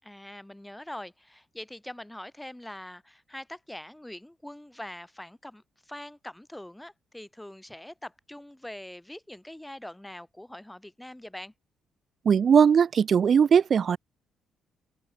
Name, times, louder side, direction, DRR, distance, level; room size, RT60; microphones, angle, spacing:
voice 1, 0.0-11.5, left 1 dB, 5° left, 5.2 m, -43 dB
voice 2, 12.3-14.0, right 7 dB, 50° right, 0.6 m, -19 dB
open air
cardioid pair, 90°, 0 cm